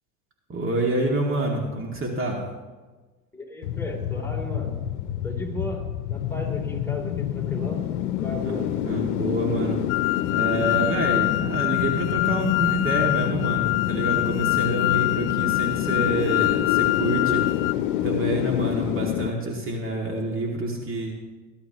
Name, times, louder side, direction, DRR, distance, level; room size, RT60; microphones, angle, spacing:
voice 1, 0.5-2.4 8.4-8.6 8.8-9.8 10.3-17.4 18.0-21.1, right 1 dB, 30° right, 0 dB, 2.4 m, -27 dB
voice 2, 3.3-4.8 5.2-5.8 6.1-7.8 8.2-8.7, left 1 dB, 5° left, -1 dB, 3.3 m, -34 dB
sound 1, 3.6-19.3, left 12 dB, 75° left, 0.8 m, -27 dB
sound 2, 9.9-17.7, left 21 dB, 45° left, 0.5 m, -25 dB
19.5 x 11.5 x 3.0 m, 1.3 s
hypercardioid pair, 85°, 44 cm